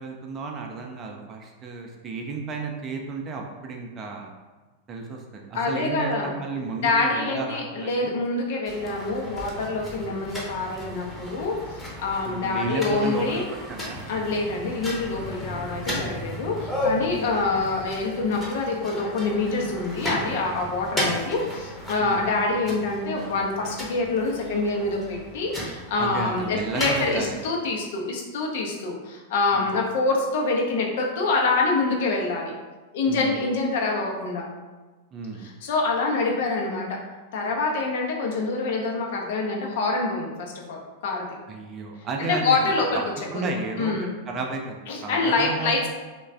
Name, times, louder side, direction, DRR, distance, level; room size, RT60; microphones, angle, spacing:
voice 1, 0.0-4.3 4.9-8.1 9.9-10.2 12.3-13.4 13.7-14.0 17.1-17.3 22.0-22.2 26.0-27.4 29.5-29.7 33.1-33.4 35.1-35.5 41.5-42.7 43.3-45.9, right 3 dB, 30° right, 1 dB, 0.5 m, -33 dB
voice 2, 5.5-6.3 6.8-13.4 14.1-32.5 32.9-34.4 35.4-37.0 37.3-41.3 42.2-43.0 43.3-43.5 43.8-44.1 44.9-45.9, left 3 dB, 55° left, 0 dB, 0.6 m, -26 dB
sound 1, 8.7-27.5, left 1 dB, 5° left, 0.8 m, -34 dB
3.1 x 2.2 x 3.6 m, 1.3 s
figure-of-eight pair, 90°, 0 cm